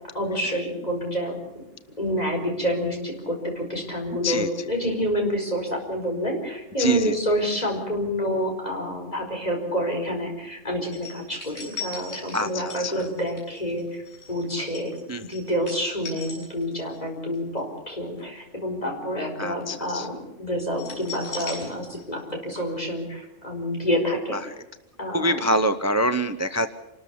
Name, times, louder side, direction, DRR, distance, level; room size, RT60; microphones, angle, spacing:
voice 1, 0.1-1.6 2.0-14.0 14.3-14.9 15.3-24.4 25.0-25.4, equal, 30° left, 1 dB, 5.0 m, -28 dB
voice 2, 4.2-4.7 6.8-7.2 12.3-13.1 15.1-15.3 19.4-20.1 24.3-24.5 25.1-26.7, right 1 dB, 15° right, 10 dB, 0.7 m, -25 dB
sound 1, 10.9-17.0 17.3-17.6 20.7-22.3 22.5-22.6, left 4 dB, 60° left, 7.6 m, -38 dB
27.0 x 13.5 x 8.5 m, 0.93 s
omnidirectional pair, 1.3 m